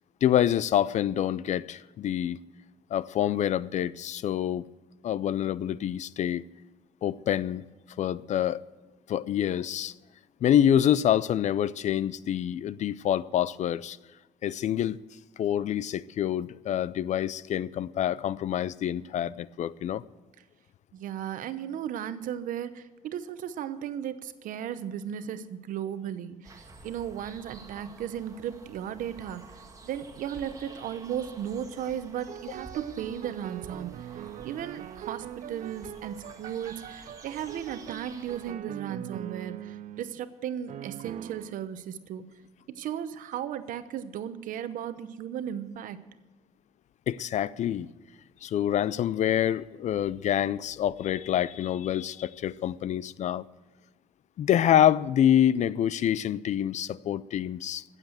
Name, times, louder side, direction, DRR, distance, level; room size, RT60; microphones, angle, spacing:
voice 1, 0.2-2.4 2.9-4.7 5.0-6.4 7.0-7.6 8.0-8.6 9.1-9.9 10.4-14.0 14.4-15.0 15.4-20.0 47.1-47.9 48.4-53.4 54.4-57.8, left 10 dB, 60° left, 0.4 m, -26 dB
voice 2, 20.9-34.1 34.4-42.3 42.7-46.0, right 9 dB, 80° right, 0.9 m, -36 dB
sound 1, 26.4-38.5, right 3 dB, 25° right, 1.8 m, -50 dB
sound 2, 32.2-40.2 40.7-41.5, right 11 dB, 65° right, 0.4 m, -42 dB
15.5 x 7.5 x 7.8 m
cardioid pair, 90°, 14 cm